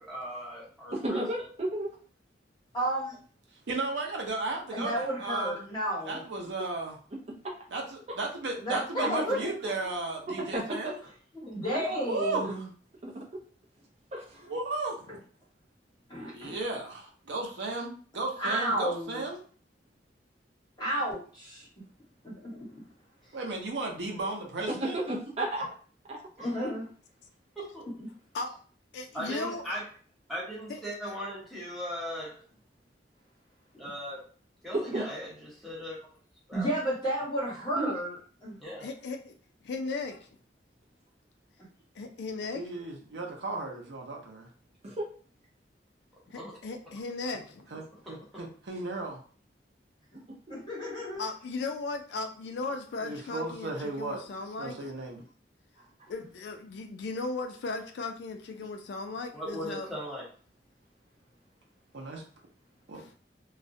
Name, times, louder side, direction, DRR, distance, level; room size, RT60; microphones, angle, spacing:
voice 1, 0.0-1.3 26.4-26.5 27.6-27.9 29.1-29.9 30.3-32.4 33.7-34.2 34.6-36.0 36.5-36.7 38.6-38.9 46.3-46.6 48.1-48.4 59.3-60.3, equal, ahead, -6 dB, 0.8 m, -38 dB
voice 2, 0.9-1.9 7.1-7.2 7.4-7.6 9.0-9.5 10.3-10.9 11.7-11.8 12.4-12.5 13.0-13.4 14.1-14.5 24.8-25.7 26.1-26.2 34.7-35.1 37.8-37.9 44.8-45.1 55.8-55.9, right 1 dB, 35° right, -1 dB, 0.5 m, -33 dB
voice 3, 2.7-3.2 4.7-6.2 8.6-9.9 11.3-12.7 16.1-16.6 18.4-19.2 20.8-21.7 22.2-22.8 26.4-26.9 36.5-38.6 50.5-51.2 58.5-58.6, right 1 dB, 25° left, -6 dB, 1.0 m, -32 dB
voice 4, 3.7-5.6 6.0-7.0 7.7-11.0 11.9-12.6 14.4-15.2 16.3-19.4 23.3-25.0 42.5-44.5 47.7-49.2 53.0-54.2 54.6-55.2 61.9-62.2 62.9-63.1, right 2 dB, 85° right, 0 dB, 0.6 m, -35 dB
voice 5, 28.9-29.8 30.7-30.8 38.8-39.3 39.6-40.3 42.0-42.6 46.3-47.7 51.2-54.8 56.1-59.9 62.9-63.1, left 3 dB, 70° left, 5 dB, 0.3 m, -36 dB
2.3 x 2.0 x 2.6 m, 0.43 s
head